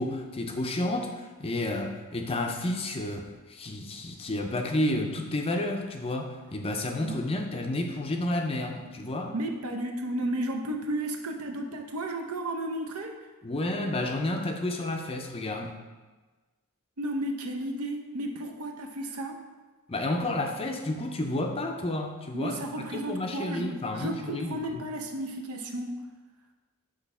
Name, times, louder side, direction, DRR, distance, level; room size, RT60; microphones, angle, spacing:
voice 1, 0.0-9.3 13.4-15.8 19.9-24.8, left 1 dB, 25° left, 4 dB, 0.5 m, -31 dB
voice 2, 9.3-13.1 17.0-19.4 22.3-26.0, right 1 dB, 75° right, 3 dB, 0.7 m, -33 dB
6.1 x 3.3 x 5.4 m, 1.2 s
head